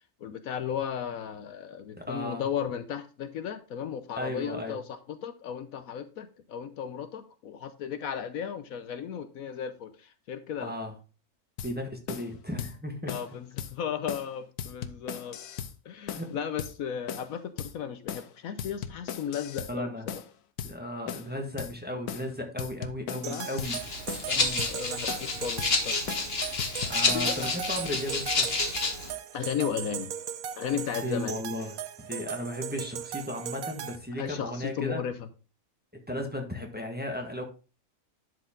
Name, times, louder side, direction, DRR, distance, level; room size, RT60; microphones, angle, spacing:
voice 1, 0.2-10.7 13.1-15.4 15.8-20.2 23.3-23.5 24.3-25.9 27.1-27.5 29.3-30.1 30.6-31.3 34.2-35.1, left 8 dB, 70° left, 1.1 m, -35 dB
voice 2, 2.0-2.4 4.2-4.8 10.6-10.9 11.6-13.1 16.1-16.3 19.7-20.0 20.6-23.8 24.3-24.7 26.8-28.5 31.0-35.0 36.1-37.4, left 1 dB, 5° right, 1.4 m, -35 dB
sound 1, 11.6-11.7 12.1-12.3 12.6-12.7 13.1-13.3 13.6-13.7 14.1-14.3 14.6-15.7 16.1-16.3 16.6-16.7 17.1-17.3 17.6-17.7 18.1-18.3 18.6-19.7 20.1-20.3 20.6-20.7 21.1-21.3 21.6-21.7 22.1-22.3 22.6-23.7 24.1-24.3 24.6-24.7 25.1-25.3 25.6-25.7 26.1-26.3 26.6-27.6, left 8 dB, 90° left, 1.3 m, -37 dB
sound 2, 23.2-34.0, right 9 dB, 75° right, 1.2 m, -38 dB
Rattle (instrument), 23.6-29.1, left 3 dB, 45° left, 1.6 m, -29 dB
11.0 x 5.0 x 3.7 m
omnidirectional pair, 1.6 m